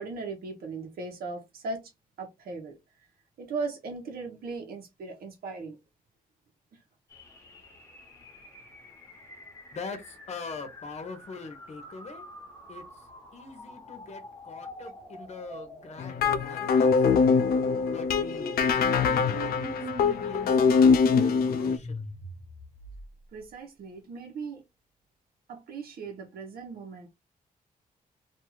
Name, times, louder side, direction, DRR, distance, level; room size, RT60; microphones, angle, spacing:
voice 1, 0.0-1.9 2.2-2.8 3.4-5.8 23.3-24.6 25.5-27.1, right 4 dB, 80° right, 1.0 m, -38 dB
sound 1, 7.1-23.4, left 1 dB, 20° left, 1.1 m, -44 dB
voice 2, 9.7-12.2 12.7-12.8 13.3-16.9 17.8-19.6 20.0-22.0, left 4 dB, 45° left, 0.9 m, -42 dB
sound 2, 16.0-21.8, left 5 dB, 85° left, 0.4 m, -23 dB
2.6 x 2.4 x 3.0 m
cardioid pair, 110°, 15 cm